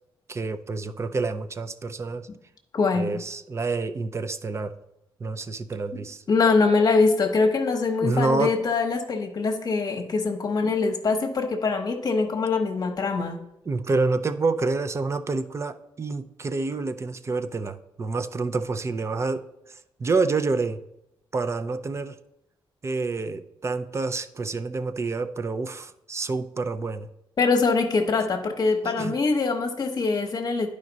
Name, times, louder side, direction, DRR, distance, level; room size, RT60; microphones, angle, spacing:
voice 1, 0.3-2.3 2.9-4.7 5.2-6.2 8.0-8.5 13.7-19.4 19.7-20.8 21.3-22.2 22.8-27.1 28.8-29.1, right 3 dB, 30° right, 11 dB, 0.5 m, -28 dB
voice 2, 2.7-3.2 6.3-13.4 27.4-30.7, left 4 dB, 45° left, 3 dB, 0.9 m, -23 dB
10.5 x 5.0 x 4.0 m, 0.85 s
cardioid pair, 115°, 9 cm